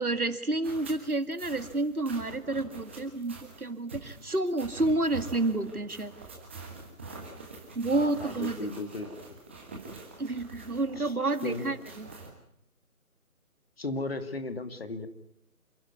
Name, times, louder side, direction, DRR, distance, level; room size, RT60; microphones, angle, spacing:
voice 1, 0.0-6.1 7.8-8.6 10.2-12.1, right 2 dB, 80° right, 11 dB, 2.2 m, -29 dB
sound 1, 0.6-12.3, right 3 dB, 10° right, 1.4 m, -45 dB
voice 2, 7.9-9.1 11.0-11.1 11.4-11.7 13.8-15.1, left 2 dB, 45° left, 9 dB, 2.3 m, -35 dB
28.5 x 12.0 x 9.6 m, 0.77 s
figure-of-eight pair, 155°, 43 cm